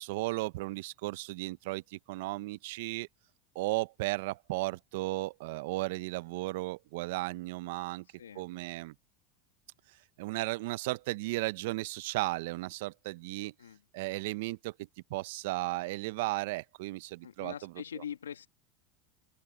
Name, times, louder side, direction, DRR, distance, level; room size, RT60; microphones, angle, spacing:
voice 1, 0.0-3.1 3.5-8.0 8.3-8.9 10.2-13.5 13.9-14.7 15.1-18.0, right 20 dB, 70° right, 1.0 m, -35 dB
voice 2, 17.2-18.5, left 8 dB, 85° left, 2.3 m, -43 dB
open air
hypercardioid pair, 85°, 0 cm